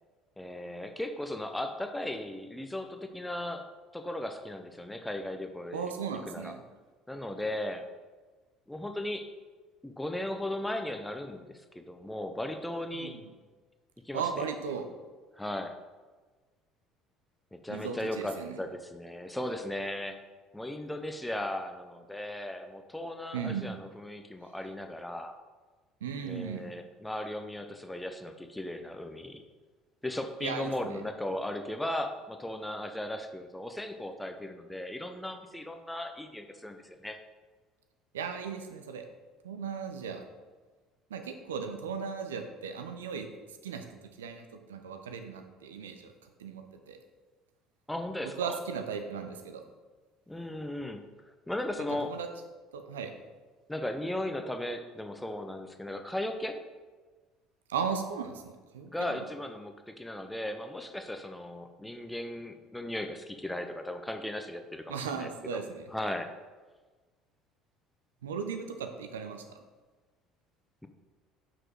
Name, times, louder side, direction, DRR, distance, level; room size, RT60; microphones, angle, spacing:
voice 1, 0.4-3.7 3.9-5.9 6.3-6.5 7.1-7.9 8.7-9.3 9.8-13.2 14.0-14.5 15.4-15.7 17.5-20.2 20.5-25.4 26.2-29.4 30.0-37.2 47.9-48.6 50.3-51.0 51.5-52.1 53.7-56.6 58.9-65.6 65.9-66.3, left 1 dB, 5° left, 6 dB, 0.6 m, -37 dB
voice 2, 5.7-6.6 12.9-13.2 14.1-14.9 17.7-18.6 23.3-23.7 26.0-26.7 30.4-31.0 38.1-39.0 39.4-40.2 41.1-43.3 43.6-46.1 46.4-47.0 48.4-49.6 52.0-52.3 52.7-53.1 57.7-59.2 64.9-65.9 68.2-69.6, right 6 dB, 70° right, 6 dB, 0.5 m, -37 dB
5.8 x 4.9 x 4.7 m, 1.3 s
figure-of-eight pair, 60°, 0 cm